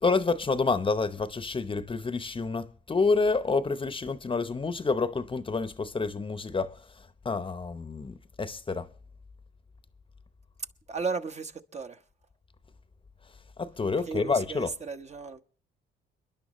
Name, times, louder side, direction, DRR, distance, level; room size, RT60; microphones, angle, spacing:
voice 1, 0.0-8.9 13.6-14.7, left 4 dB, 25° left, 0.8 m, -28 dB
voice 2, 10.9-12.0 14.1-15.4, right 4 dB, 35° right, 1.0 m, -35 dB
30.0 x 10.5 x 3.1 m
cardioid pair, 90°, 20 cm